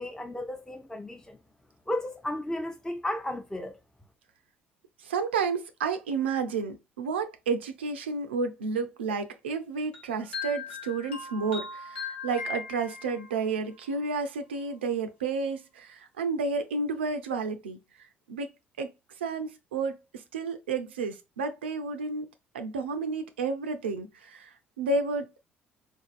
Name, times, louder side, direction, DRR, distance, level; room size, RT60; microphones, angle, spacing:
voice 1, 0.0-1.4 1.9-3.8, left 1 dB, 10° left, 0.5 m, -34 dB
voice 2, 5.0-17.8 18.3-18.5 18.8-18.9 19.2-22.3 22.5-25.3, right 4 dB, 80° right, 0.4 m, -31 dB
sound 1, 9.9-13.4, left 5 dB, 80° left, 0.8 m, -38 dB
3.8 x 2.5 x 2.3 m
figure-of-eight pair, 50°, 6 cm